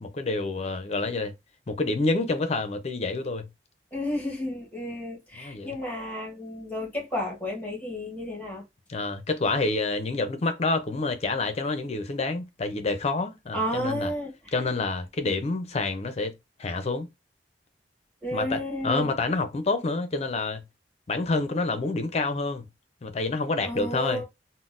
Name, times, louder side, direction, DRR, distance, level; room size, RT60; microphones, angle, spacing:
voice 1, 0.0-1.3 1.7-3.5 5.3-5.7 8.9-14.1 14.5-16.3 16.6-17.1 18.3-20.6 21.1-22.6 23.0-24.2, left 3 dB, 35° left, 0.5 m, -28 dB
voice 2, 3.9-8.6 13.5-14.5 18.2-19.1 23.6-24.2, equal, 10° left, 1.1 m, -32 dB
3.8 x 2.0 x 2.4 m
head